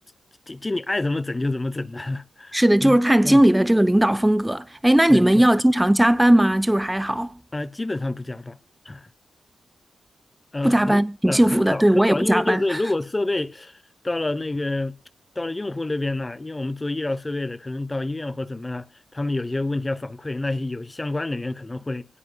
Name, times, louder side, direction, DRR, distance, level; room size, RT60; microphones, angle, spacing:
voice 1, 0.5-3.0 3.2-3.4 5.1-5.5 7.5-8.6 8.8-9.1 10.5-13.8 14.0-15.0 15.4-18.9 19.1-22.0, left 2 dB, 25° left, 0.8 m, -28 dB
voice 2, 2.5-7.4 10.6-12.8, right 1 dB, 10° right, 0.7 m, -18 dB
24.5 x 18.5 x 2.3 m
cardioid pair, 60°, 0 cm